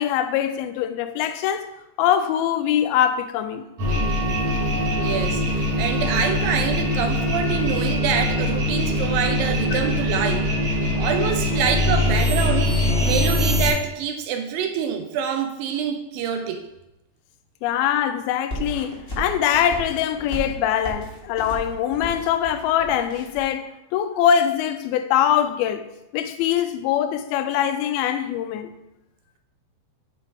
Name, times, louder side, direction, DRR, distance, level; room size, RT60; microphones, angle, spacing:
voice 1, 0.0-1.7 2.0-3.7 9.7-9.8 17.6-25.9 26.1-28.7, left 9 dB, 85° left, 2.4 m, -23 dB
sound 1, 3.8-13.7, left 1 dB, 55° right, 2.8 m, -22 dB
voice 2, 4.9-10.5 11.0-16.6, right 7 dB, 80° right, 2.2 m, -26 dB
sound 2, 18.5-23.5, right 2 dB, 35° left, 0.8 m, -35 dB
7.6 x 3.8 x 4.5 m
omnidirectional pair, 4.4 m